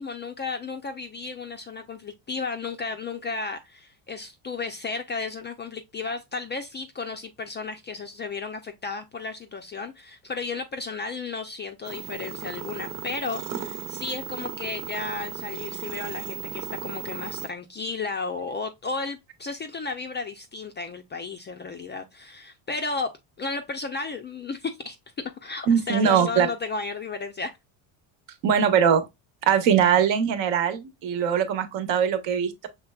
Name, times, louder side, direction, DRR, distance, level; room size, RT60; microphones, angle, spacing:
voice 1, 0.0-23.1 23.4-25.0 25.4-27.5, left 4 dB, 25° left, 0.3 m, -33 dB
sound 1, 11.9-17.5, right 8 dB, 40° right, 1.0 m, -36 dB
voice 2, 25.7-26.5 28.4-29.0 29.4-32.7, right 7 dB, 65° right, 1.0 m, -21 dB
5.8 x 3.3 x 2.2 m
cardioid pair, 120°, 50 cm